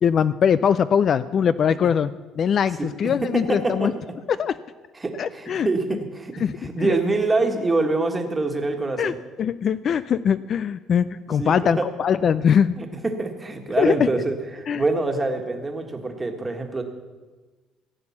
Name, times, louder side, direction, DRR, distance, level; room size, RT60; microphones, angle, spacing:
voice 1, 0.0-2.1 2.4-3.9 4.4-4.5 5.2-5.7 6.4-6.5 6.8-7.0 9.0-9.1 9.4-12.8 13.8-14.1 14.7-14.8, left 7 dB, 40° left, 15 dB, 0.3 m, -21 dB
voice 2, 3.2-3.9 4.9-9.2 11.4-11.9 12.8-16.8, right 3 dB, 15° right, 4 dB, 1.6 m, -25 dB
15.5 x 8.7 x 7.2 m, 1.3 s
cardioid pair, 140°, 0 cm